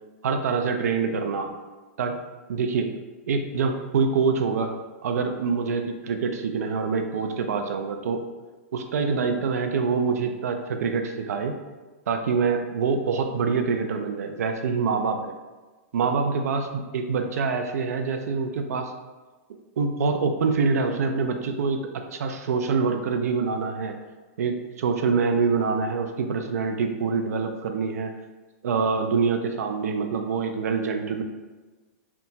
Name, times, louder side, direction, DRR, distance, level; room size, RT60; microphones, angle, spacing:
voice 1, 0.2-1.5 2.0-2.1 2.5-2.9 3.3-4.8 5.0-8.2 8.7-11.6 12.1-15.3 15.9-18.9 19.8-24.0 24.4-28.1 28.6-31.2, right 5 dB, 90° right, 6 dB, 0.4 m, -25 dB
2.8 x 2.2 x 2.7 m, 1.2 s
supercardioid pair, 165°, 8 cm